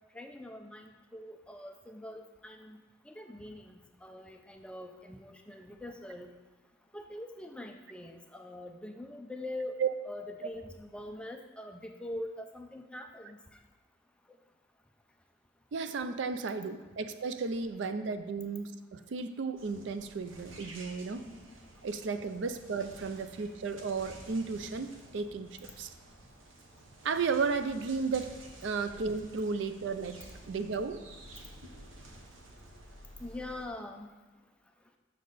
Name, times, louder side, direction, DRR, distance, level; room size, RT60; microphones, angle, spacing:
voice 1, 0.1-2.8 3.0-6.3 6.9-9.8 10.0-13.6 33.2-34.1, left 1 dB, 5° left, 4 dB, 0.4 m, -43 dB
voice 2, 15.7-21.3 21.8-25.9 27.0-28.3 28.6-30.2 30.5-31.0, right 4 dB, 65° right, 10 dB, 0.4 m, -34 dB
sound 1, 19.6-33.7, right 1 dB, 85° right, 1.0 m, -51 dB
6.6 x 6.3 x 4.0 m, 1.2 s
head